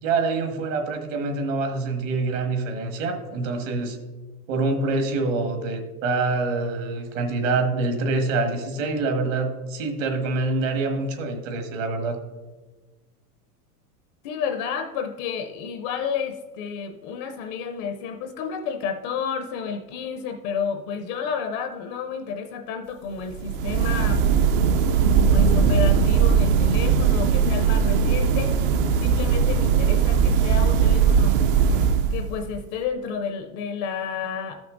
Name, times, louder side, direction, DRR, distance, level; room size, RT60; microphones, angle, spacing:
voice 1, 0.0-4.0 4.5-12.2, right 3 dB, 60° right, 5 dB, 1.7 m, -25 dB
voice 2, 14.2-24.2 25.3-28.6 29.0-31.4 32.1-34.6, left 6 dB, 30° left, 6 dB, 0.4 m, -31 dB
sound 1, 23.3-32.5, right 6 dB, 40° right, 0.4 m, -19 dB
13.5 x 6.0 x 3.8 m, 1.2 s
supercardioid pair, 150°, 45 cm